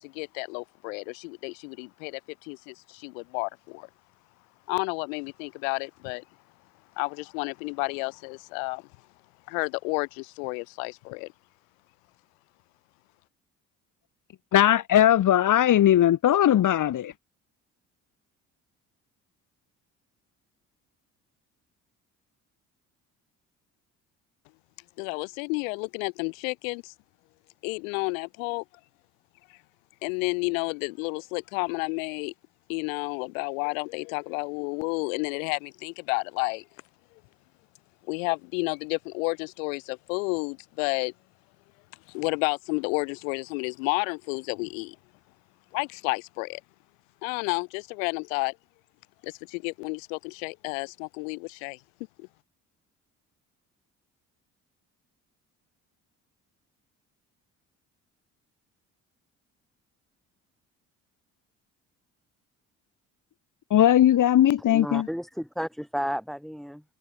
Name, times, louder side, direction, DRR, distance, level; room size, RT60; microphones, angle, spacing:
voice 1, 0.0-3.9 4.7-6.2 7.0-8.9 9.5-11.3 25.0-26.9 27.6-28.6 30.0-32.3 32.7-36.6 38.1-41.1 42.1-45.0 45.7-46.6 47.2-48.6 49.2-51.8 52.2-52.3, left 32 dB, 80° left, 2.1 m, -31 dB
voice 2, 14.5-17.1 63.7-65.1, left 11 dB, 50° left, 1.4 m, -19 dB
voice 3, 64.7-66.8, equal, ahead, 4.7 m, -32 dB
hypercardioid pair, 55°, 39 cm